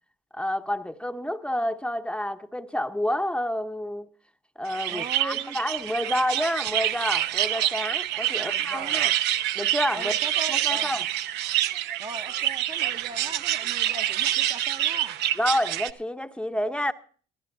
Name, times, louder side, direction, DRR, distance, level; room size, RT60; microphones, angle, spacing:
voice 1, 0.3-4.1 4.6-9.1 9.5-10.1 10.5-11.1 15.4-16.9, left 1 dB, 5° left, 0.8 m, -29 dB
sound 1, 4.7-15.9, right 13 dB, 90° right, 0.8 m, -27 dB
voice 2, 4.9-5.6 8.3-9.1 9.9-11.0 12.0-15.2, right 3 dB, 25° right, 0.8 m, -40 dB
23.5 x 14.5 x 2.6 m
cardioid pair, 110°, 17 cm